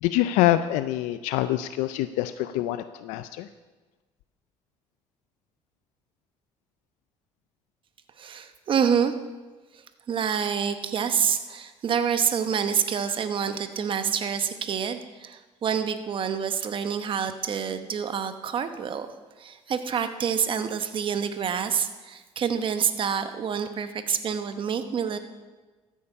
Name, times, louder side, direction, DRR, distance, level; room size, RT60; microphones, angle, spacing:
voice 1, 0.0-3.5, left 14 dB, 90° left, 12 dB, 0.4 m, -25 dB
voice 2, 8.2-9.1 9.7-9.8 10.1-19.1 19.4-25.2, right 7 dB, 45° right, 9 dB, 1.0 m, -27 dB
14.0 x 8.5 x 5.4 m, 1.3 s
cardioid pair, 100°, 12 cm